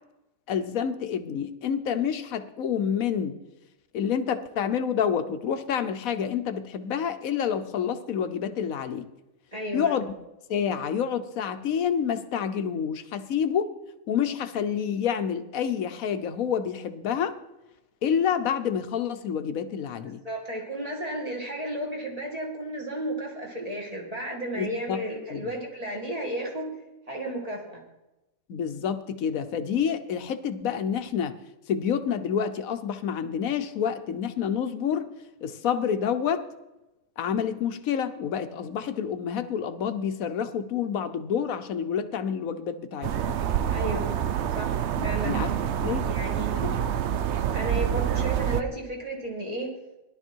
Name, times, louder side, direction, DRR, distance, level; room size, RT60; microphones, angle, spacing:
voice 1, 0.5-3.4 3.9-9.1 9.7-10.1 10.5-13.7 14.1-17.4 18.0-20.2 24.6-25.0 25.3-25.5 28.5-31.3 31.7-35.1 35.4-36.4 37.2-43.3 45.0-45.5 45.8-46.1 46.5-46.8, left 8 dB, 80° left, 10 dB, 1.3 m, -28 dB
voice 2, 9.5-10.0 20.2-26.7 27.1-27.8 43.7-44.2 44.6-44.7 45.0-45.3 46.0-46.6 47.5-49.7, right 1 dB, 25° right, -1 dB, 2.6 m, -33 dB
sound 1, 43.0-48.6, right 9 dB, 60° right, 0.9 m, -27 dB
17.0 x 11.5 x 4.5 m, 0.99 s
omnidirectional pair, 1.4 m